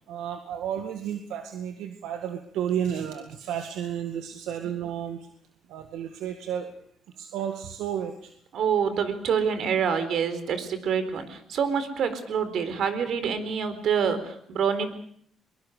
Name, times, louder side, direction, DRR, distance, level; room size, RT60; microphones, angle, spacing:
voice 1, 0.1-5.2 5.7-6.7 7.2-8.3, right 9 dB, 90° right, 6 dB, 2.0 m, -32 dB
voice 2, 8.5-14.9, right 7 dB, 70° right, 11 dB, 4.2 m, -26 dB
23.0 x 22.5 x 6.7 m, 0.64 s
cardioid pair, 90°, 0 cm